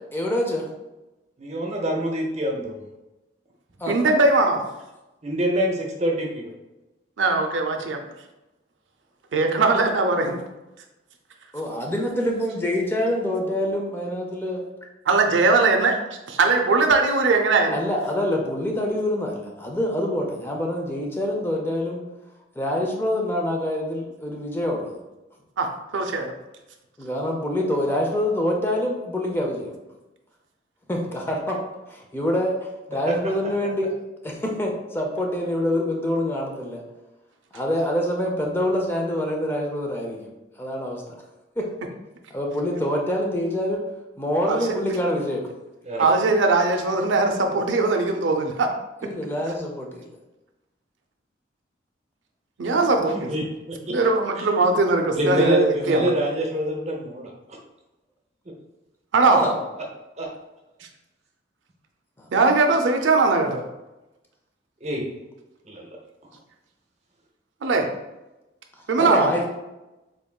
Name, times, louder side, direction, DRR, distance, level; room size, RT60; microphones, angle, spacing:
voice 1, 0.1-0.7 3.8-4.1 11.5-14.6 17.7-22.0 22.6-25.0 27.0-29.7 30.9-31.6 31.9-33.9 34.2-36.8 37.5-40.3 40.6-41.2 41.6-41.7 42.3-43.8 44.2-45.5 49.0-50.1 59.3-59.5 62.2-62.3 69.0-69.5, left 1 dB, 10° left, 0 dB, 0.5 m, -26 dB
voice 2, 1.4-2.8 5.2-6.5 45.9-46.0 53.3-53.9 54.4-54.5 55.1-57.3 60.2-60.3 64.8-65.0 65.7-65.9, right 1 dB, 35° right, 0 dB, 0.8 m, -25 dB
voice 3, 3.9-4.6 7.2-8.0 9.3-10.4 15.1-16.0 16.3-17.8 25.6-26.3 44.5-44.6 46.0-48.7 52.6-53.3 53.9-56.1 59.1-59.4 62.3-63.6 67.6-67.9 68.9-69.3, right 3 dB, 85° right, 4 dB, 0.5 m, -20 dB
3.8 x 3.6 x 2.3 m, 1.0 s
head